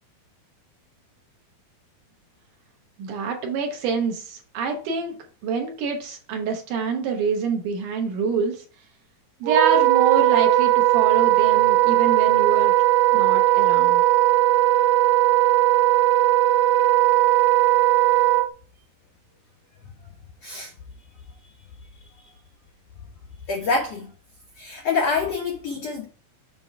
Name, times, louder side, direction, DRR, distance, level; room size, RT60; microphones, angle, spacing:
voice 1, 3.0-5.2 5.4-8.6 9.4-12.7 13.1-14.0, right 5 dB, 70° right, 2.1 m, -26 dB
Wind instrument woodwind instrument, 9.5-18.5, right 16 dB, 85° right, 2.5 m, -18 dB
voice 2, 20.4-20.7 21.4-21.5 22.0-22.3 23.5-24.1 24.6-26.1, left 4 dB, 85° left, 1.4 m, -26 dB
7.2 x 3.4 x 5.7 m
omnidirectional pair, 4.3 m